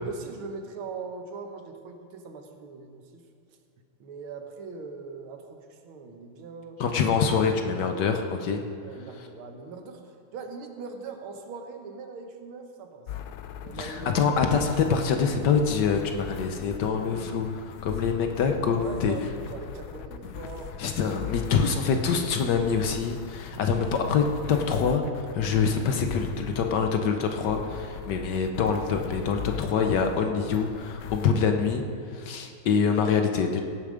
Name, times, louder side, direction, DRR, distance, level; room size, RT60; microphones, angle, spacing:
voice 1, 0.0-3.2 4.0-6.8 8.8-10.0 10.3-13.1 13.6-14.1 18.8-20.7, right 4 dB, 75° right, 5 dB, 1.9 m, -41 dB
voice 2, 6.8-8.6 13.8-19.1 20.8-31.8 32.1-33.6, left 6 dB, 65° left, 5 dB, 1.2 m, -25 dB
sound 1, 13.1-31.4, left 8 dB, 85° left, 0.8 m, -40 dB
17.0 x 6.9 x 5.0 m, 2.3 s
omnidirectional pair, 2.3 m